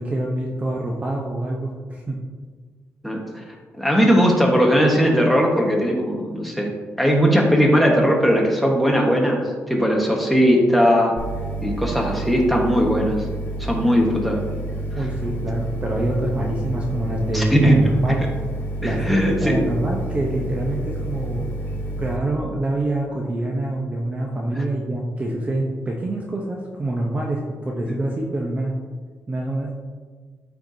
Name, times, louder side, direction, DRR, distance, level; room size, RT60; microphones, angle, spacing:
voice 1, 0.0-2.2 15.0-18.3 18.8-21.5 22.0-28.7 29.3-29.7, right 1 dB, 25° right, -1 dB, 0.7 m, -26 dB
voice 2, 3.0-3.4 3.8-6.7 7.0-9.4 9.7-11.2 11.6-13.2 13.6-14.5 17.3-17.8 18.8-19.6 27.9-28.0, equal, ahead, -1 dB, 1.2 m, -18 dB
sound 1, 11.2-22.2, right 1 dB, 35° left, 1.7 m, -29 dB
13.0 x 4.5 x 2.7 m, 1.5 s
wide cardioid pair, 145°, 5 cm